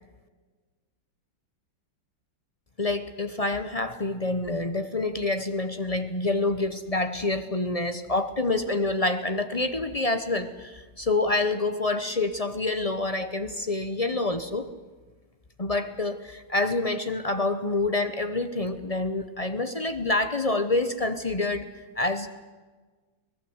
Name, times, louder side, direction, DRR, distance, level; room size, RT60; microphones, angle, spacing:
voice 1, 2.8-14.7 15.6-21.7 22.0-22.3, left 2 dB, 45° left, 9 dB, 0.4 m, -27 dB
24.0 x 19.0 x 8.0 m, 1.4 s
omnidirectional pair, 2.2 m